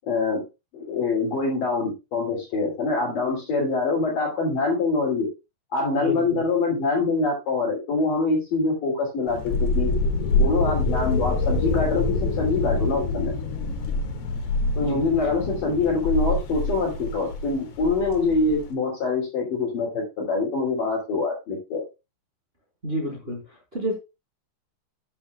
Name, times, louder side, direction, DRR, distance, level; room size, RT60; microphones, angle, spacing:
voice 1, 0.1-0.4 0.7-5.3 5.7-9.9 10.4-13.3 14.8-21.9, left 3 dB, 50° left, -1 dB, 4.0 m, -24 dB
voice 2, 6.0-6.4 14.8-15.3 22.8-23.9, equal, 15° right, -2 dB, 3.8 m, -31 dB
sound 1, 9.3-18.7, left 2 dB, 65° left, 3.3 m, -26 dB
12.0 x 8.5 x 2.4 m, 0.27 s
omnidirectional pair, 5.7 m